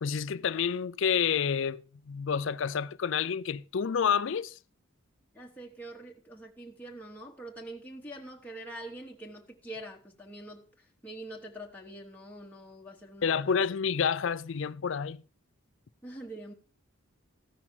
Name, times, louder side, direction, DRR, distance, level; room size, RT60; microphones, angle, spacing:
voice 1, 0.0-4.6 13.2-15.2, left 7 dB, 65° left, 0.4 m, -29 dB
voice 2, 5.3-13.5 16.0-16.5, right 1 dB, 10° left, 1.1 m, -45 dB
14.5 x 6.0 x 5.8 m
head